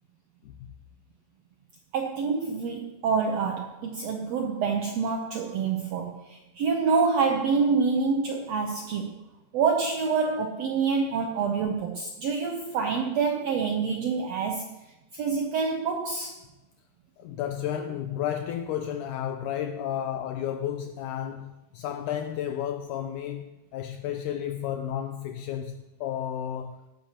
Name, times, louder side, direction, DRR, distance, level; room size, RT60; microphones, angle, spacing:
voice 1, 1.9-9.1 9.5-14.7 15.1-16.4, right 5 dB, 75° right, 1.5 m, -27 dB
voice 2, 17.2-26.8, left 10 dB, 80° left, 1.9 m, -32 dB
17.0 x 12.5 x 2.9 m
omnidirectional pair, 4.0 m